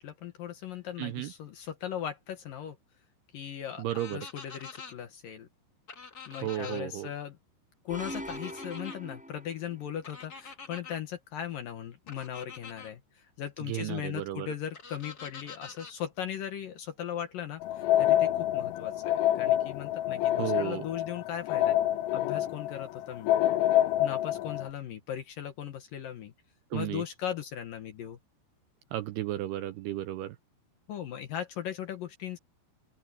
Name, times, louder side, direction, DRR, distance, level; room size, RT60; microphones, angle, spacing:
voice 1, 0.0-2.8 3.3-5.5 6.3-7.4 7.8-21.8 22.1-23.4 24.0-26.3 26.7-28.2 30.9-32.4, left 9 dB, 65° left, 2.5 m, -38 dB
voice 2, 1.0-1.3 3.8-4.2 6.4-7.1 13.7-14.5 20.4-20.8 26.7-27.0 28.9-30.4, right 14 dB, 80° right, 2.4 m, -33 dB
sound 1, 3.9-4.9 5.9-6.8 8.0-9.0 10.0-11.0 12.1-12.9 14.7-15.9, left 5 dB, 40° left, 1.4 m, -46 dB
sound 2, 7.9-9.9, equal, ahead, 5.0 m, -41 dB
sound 3, 17.6-24.7, left 13 dB, 90° left, 3.2 m, -27 dB
open air
omnidirectional pair, 5.3 m